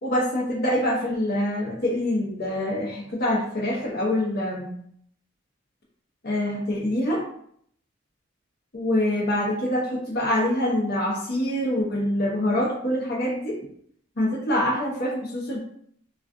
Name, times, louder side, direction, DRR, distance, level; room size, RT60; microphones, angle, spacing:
voice 1, 0.0-4.7 6.2-7.3 8.7-13.6 14.2-15.6, left 1 dB, 55° left, -1 dB, 0.8 m, -25 dB
2.4 x 2.3 x 3.6 m, 0.65 s
head